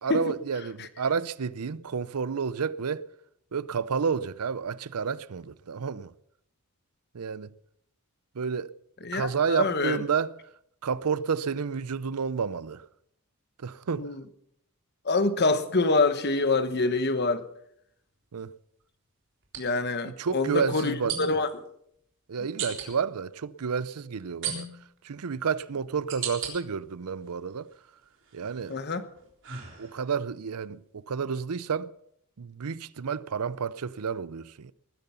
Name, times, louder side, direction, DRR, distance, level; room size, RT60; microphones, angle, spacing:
voice 1, 0.0-3.1 3.5-6.1 7.1-7.5 8.3-8.7 9.1-10.3 10.8-12.8 13.6-14.1 18.3-18.5 20.1-21.3 22.3-24.7 25.0-27.7 28.3-28.8 29.8-31.9 32.4-34.7, right 6 dB, 90° right, 0.6 m, -30 dB
voice 2, 9.0-10.0 14.0-14.2 15.0-17.4 19.6-21.5 28.7-29.1, left 3 dB, 50° left, 1.1 m, -26 dB
sound 1, 19.4-19.6 21.1-21.5 22.6-22.9 24.4-25.0 25.6-26.5 27.1-27.7 28.2-30.2, right 7 dB, 55° right, 3.8 m, -36 dB
20.0 x 10.5 x 5.7 m
head